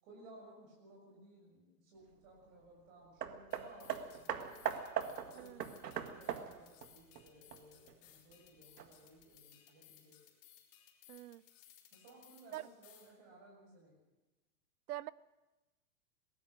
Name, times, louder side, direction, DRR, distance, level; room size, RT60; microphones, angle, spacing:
voice 1, 0.0-4.6 5.1-10.2 11.9-14.0, right 1 dB, 45° right, -1 dB, 6.6 m, -59 dB
Hammer, 3.2-7.9 8.8-8.9, right 8 dB, 85° right, 1.8 m, -41 dB
sound 1, 3.5-13.1, left 11 dB, 50° left, 4.3 m, -63 dB
voice 2, 11.1-11.4 12.5-12.7 14.9-15.1, right 14 dB, 70° right, 21 dB, 0.8 m, -44 dB
22.5 x 18.0 x 6.5 m, 1.1 s
hypercardioid pair, 125°, 47 cm